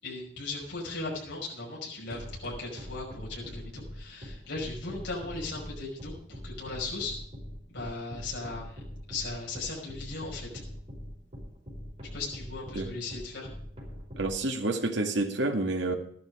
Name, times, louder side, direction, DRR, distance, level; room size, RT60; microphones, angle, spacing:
voice 1, 0.0-7.1 7.7-8.7 9.1-10.6 12.1-13.5, left 3 dB, 70° left, -3 dB, 5.6 m, -37 dB
sound 1, 2.1-14.3, equal, 35° right, 4.9 m, -42 dB
voice 2, 14.2-16.0, right 2 dB, 75° right, 4 dB, 2.1 m, -29 dB
13.5 x 11.5 x 4.9 m, 0.62 s
head